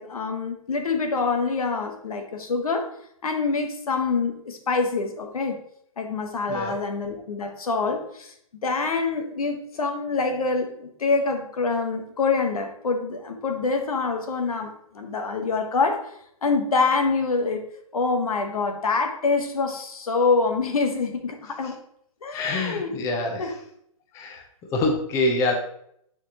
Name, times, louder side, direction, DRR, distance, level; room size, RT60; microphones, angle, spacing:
voice 1, 0.0-2.9 3.2-5.6 6.0-8.3 8.6-16.0 16.4-17.6 17.9-21.8 22.2-23.0 23.4-23.5, left 4 dB, 90° left, 5 dB, 1.3 m, -25 dB
voice 2, 22.3-23.5 24.1-24.4 24.7-25.5, left 2 dB, 15° left, 2 dB, 0.7 m, -25 dB
9.0 x 4.3 x 2.9 m, 0.70 s
hypercardioid pair, 155°, 18 cm